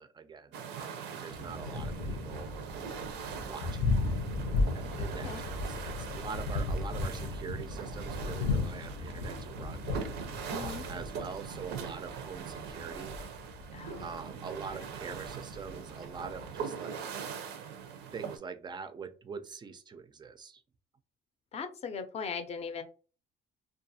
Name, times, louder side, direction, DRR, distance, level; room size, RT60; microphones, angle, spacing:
voice 1, 0.0-2.5 3.4-3.8 4.7-9.9 10.5-13.1 14.0-17.0 18.1-20.6, right 5 dB, 25° right, 9 dB, 0.4 m, -44 dB
sound 1, 0.5-18.4, right 7 dB, 85° right, 0.5 m, -41 dB
Thunder, 1.3-16.6, left 3 dB, 90° left, 0.7 m, -36 dB
voice 2, 10.5-10.8 13.7-14.1 14.7-14.9 21.5-22.8, left 5 dB, 40° left, 8 dB, 0.5 m, -39 dB
2.4 x 2.3 x 2.7 m, 0.36 s
cardioid pair, 110°, 17 cm